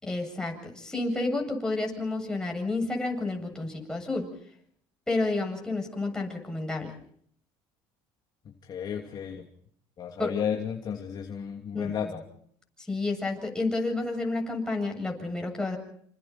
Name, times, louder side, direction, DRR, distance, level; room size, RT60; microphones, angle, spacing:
voice 1, 0.0-4.3 5.1-6.9 10.2-10.3 11.7-12.2 12.9-15.8, left 2 dB, 5° left, 1 dB, 7.8 m, -30 dB
voice 2, 8.4-9.5 10.0-12.2, left 8 dB, 40° left, 1 dB, 2.9 m, -33 dB
29.0 x 27.0 x 4.5 m, 0.65 s
cardioid pair, 120°, 11 cm